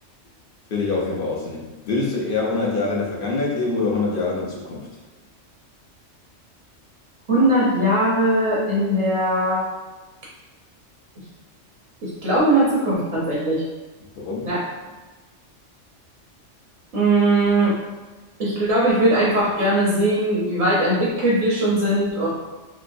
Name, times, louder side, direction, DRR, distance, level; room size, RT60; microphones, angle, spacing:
voice 1, 0.7-4.9 14.2-14.6, left 3 dB, 60° left, -3 dB, 0.6 m, -25 dB
voice 2, 7.3-9.7 12.0-13.6 14.4-14.7 16.9-17.8 18.4-22.3, right 1 dB, 65° right, -6 dB, 1.0 m, -20 dB
3.1 x 2.7 x 2.5 m, 1.2 s
omnidirectional pair, 1.3 m